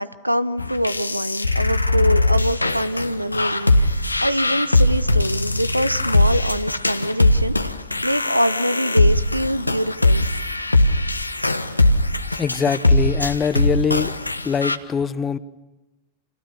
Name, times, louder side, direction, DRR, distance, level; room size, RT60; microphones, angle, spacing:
voice 1, 0.0-10.3, equal, 90° right, 17 dB, 0.9 m, -24 dB
sound 1, 0.6-14.8, left 2 dB, 85° left, 1.3 m, -20 dB
voice 2, 12.4-14.1 14.4-15.4, left 6 dB, 20° left, 15 dB, 1.1 m, -22 dB
29.5 x 29.0 x 6.9 m, 1.1 s
figure-of-eight pair, 90°, 0 cm